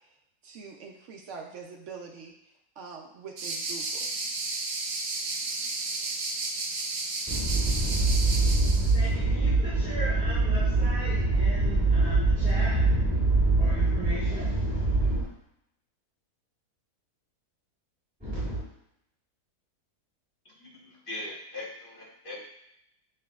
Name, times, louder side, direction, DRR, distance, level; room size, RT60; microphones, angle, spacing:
voice 1, 0.4-2.3 2.8-4.1 12.5-12.7, right 5 dB, 70° right, 2 dB, 0.7 m, -44 dB
sound 1, 3.4-9.0, right 3 dB, 85° right, 1.3 m, -32 dB
voice 2, 7.3-15.2 18.2-18.6, right 2 dB, 5° right, -13 dB, 1.3 m, -24 dB
voice 3, 20.6-22.5, left 2 dB, 40° left, -4 dB, 1.2 m, -40 dB
7.0 x 2.8 x 2.3 m, 0.80 s
omnidirectional pair, 1.7 m